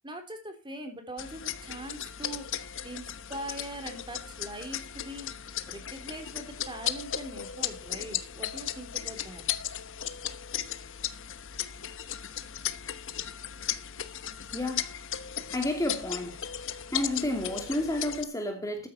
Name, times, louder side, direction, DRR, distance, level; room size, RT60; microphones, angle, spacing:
voice 1, 0.0-5.3 5.7-9.5, right 1 dB, 25° right, 3.3 m, -42 dB
sound 1, 1.2-18.2, left 10 dB, 65° left, 1.1 m, -36 dB
voice 2, 14.5-15.2 15.5-16.4 16.9-18.9, left 1 dB, 15° left, 2.6 m, -31 dB
14.0 x 9.5 x 4.2 m
head